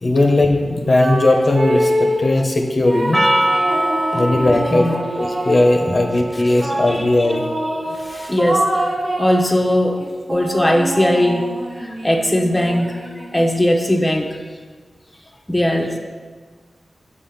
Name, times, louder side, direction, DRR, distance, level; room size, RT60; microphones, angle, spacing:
voice 1, 0.0-3.3 4.1-4.9 5.2-7.4, left 2 dB, 55° left, 2 dB, 0.8 m, -17 dB
sound 1, 0.8-2.3 2.8-5.8 6.6-9.5 10.0-13.6, right 1 dB, 50° right, 1.1 m, -25 dB
Percussion, 3.1-7.7, right 1 dB, 20° right, 0.4 m, -24 dB
voice 2, 6.9-7.3 7.7-8.7 9.2-10.0 10.3-11.5 11.8-13.0 13.3-14.3 15.5-16.0, left 1 dB, 15° left, 2 dB, 0.8 m, -19 dB
6.8 x 3.6 x 5.7 m, 1.5 s
cardioid pair, 40°, 0 cm